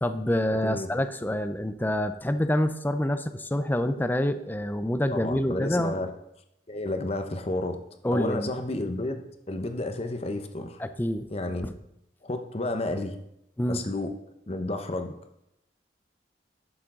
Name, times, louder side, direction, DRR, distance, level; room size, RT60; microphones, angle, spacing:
voice 1, 0.0-6.0 8.0-8.5 10.8-11.3 11.6-11.7 13.6-13.8, left 1 dB, 10° left, 10 dB, 0.5 m, -27 dB
voice 2, 5.1-6.1 6.7-7.8 8.1-10.8 11.3-11.7 12.2-13.2 13.7-14.1 14.5-15.1, left 2 dB, 35° left, 7 dB, 0.8 m, -31 dB
11.5 x 7.0 x 3.8 m, 0.82 s
head